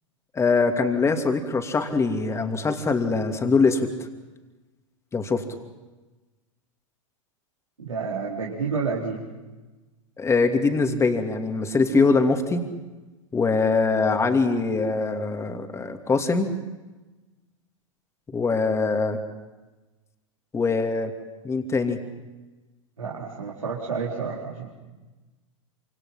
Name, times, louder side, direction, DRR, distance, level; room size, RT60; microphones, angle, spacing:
voice 1, 0.3-3.9 5.1-5.4 10.2-12.6 13.3-16.5 18.3-19.2 20.5-21.1 21.4-22.0, left 4 dB, 15° left, 5 dB, 2.7 m, -22 dB
voice 2, 7.8-9.2 23.0-24.7, right 5 dB, 80° right, -4 dB, 4.0 m, -30 dB
27.5 x 26.0 x 5.8 m, 1.2 s
figure-of-eight pair, 95°, 17 cm